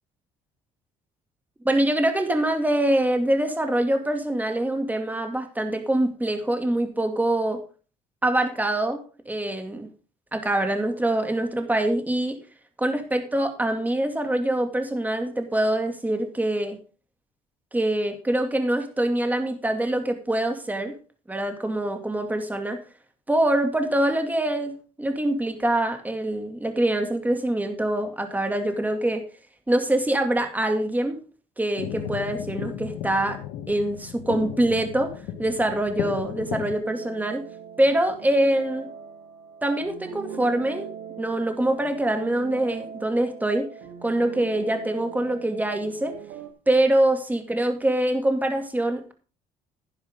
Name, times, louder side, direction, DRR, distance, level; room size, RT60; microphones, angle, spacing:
voice 1, 1.6-7.6 8.2-9.9 10.3-12.4 12.8-16.8 17.7-21.0 21.3-22.8 23.3-29.2 29.7-31.2 31.6-33.4 33.7-35.1 35.4-37.4 37.8-38.9 39.6-40.8 41.2-43.7 44.0-46.2 46.7-49.1, right 1 dB, 10° right, 6 dB, 2.4 m, -24 dB
sound 1, 31.8-36.8, left 10 dB, 85° left, 1.5 m, -34 dB
sound 2, 36.8-46.5, right 9 dB, 85° right, 1.7 m, -40 dB
10.5 x 10.5 x 3.7 m, 0.37 s
supercardioid pair, 80°, 16 cm